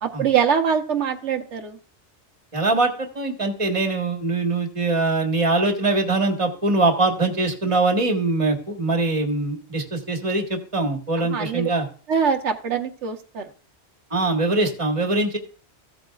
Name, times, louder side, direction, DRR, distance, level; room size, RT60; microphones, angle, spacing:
voice 1, 0.0-1.8 11.3-11.7 12.1-13.5, right 7 dB, 90° right, 5 dB, 1.3 m, -23 dB
voice 2, 2.5-11.8 14.1-15.4, right 2 dB, 30° right, 4 dB, 1.6 m, -22 dB
15.0 x 7.9 x 2.4 m, 0.41 s
omnidirectional pair, 1.2 m